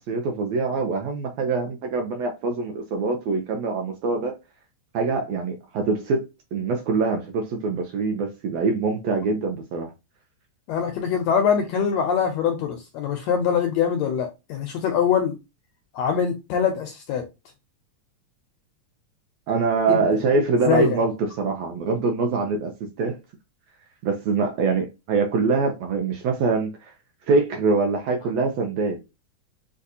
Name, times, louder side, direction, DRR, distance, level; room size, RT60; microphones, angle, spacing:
voice 1, 0.0-4.4 4.9-9.9 19.5-23.2 24.0-26.9 27.3-29.0, right 4 dB, 75° right, 1.6 m, -24 dB
voice 2, 10.7-15.4 15.9-17.3 19.9-20.0 20.7-21.0, left 7 dB, 80° left, 1.6 m, -23 dB
6.5 x 2.4 x 2.7 m
omnidirectional pair, 3.6 m